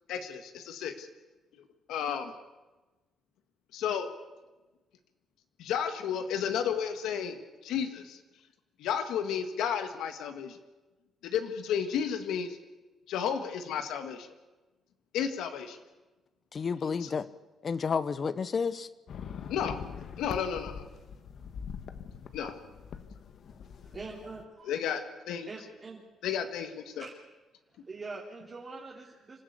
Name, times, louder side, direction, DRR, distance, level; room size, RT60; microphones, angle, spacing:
voice 1, 0.1-1.1 1.9-2.3 3.7-4.1 5.6-8.2 8.8-10.6 11.2-12.6 13.1-14.3 15.1-15.8 17.0-17.1 19.5-19.8 20.2-20.9 22.3-22.5 24.7-25.5 26.2-27.0, left 8 dB, 85° left, 7 dB, 1.9 m, -32 dB
voice 2, 16.5-17.3 17.6-18.9, left 5 dB, 45° left, 15 dB, 1.0 m, -30 dB
sound 1, 19.1-24.4, left 7 dB, 60° left, 1.4 m, -43 dB
voice 3, 23.8-24.8 25.5-26.0 27.0-27.2 27.7-29.4, right 3 dB, 35° right, -2 dB, 3.1 m, -44 dB
25.5 x 14.0 x 8.4 m, 1.2 s
cardioid pair, 90°, 0 cm